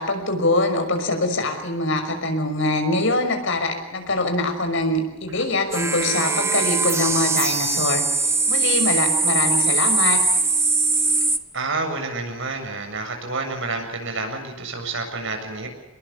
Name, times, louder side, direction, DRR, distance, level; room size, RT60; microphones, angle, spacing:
voice 1, 0.0-8.0 8.5-10.2, left 2 dB, 65° left, 6 dB, 6.1 m, -23 dB
sound 1, 5.4-5.5 5.7-11.4, right 3 dB, 15° right, 1.3 m, -21 dB
voice 2, 11.5-15.7, right 3 dB, 70° right, 4 dB, 7.6 m, -29 dB
27.0 x 21.5 x 7.4 m, 1.0 s
head